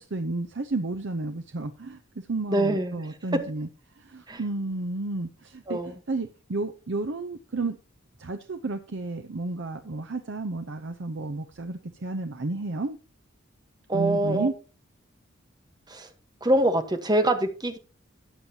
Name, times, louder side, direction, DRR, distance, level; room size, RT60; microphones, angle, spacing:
voice 1, 0.0-3.7 4.0-7.8 8.2-13.0 13.9-14.5, right 2 dB, 65° right, 8 dB, 0.7 m, -32 dB
voice 2, 2.5-3.0 4.3-4.4 5.7-5.9 13.9-14.5 15.9-16.1 16.4-17.8, right 1 dB, 20° right, 7 dB, 1.3 m, -24 dB
13.5 x 9.0 x 2.9 m, 0.35 s
head